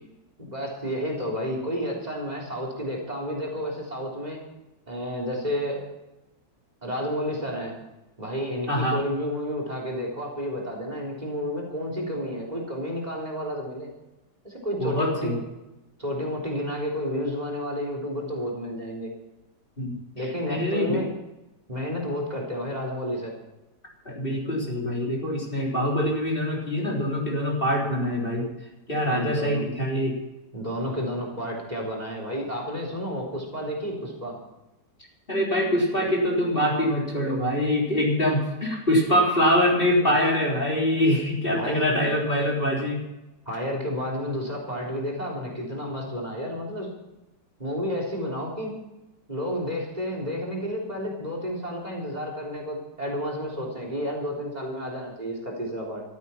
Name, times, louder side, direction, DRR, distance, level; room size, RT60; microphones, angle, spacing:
voice 1, 0.4-4.4 4.9-5.8 6.8-7.7 8.2-13.9 14.4-15.4 16.0-19.1 20.2-21.1 21.7-23.3 29.0-29.6 30.5-34.4 41.6-41.9 43.5-46.9 47.6-48.7 49.3-56.0, equal, 20° right, 0 dB, 3.8 m, -31 dB
voice 2, 8.7-9.0 14.8-15.4 19.8-21.0 24.1-28.5 28.9-30.1 35.3-43.0, equal, 30° left, -3 dB, 4.1 m, -24 dB
15.0 x 14.0 x 5.8 m, 0.97 s
omnidirectional pair, 1.9 m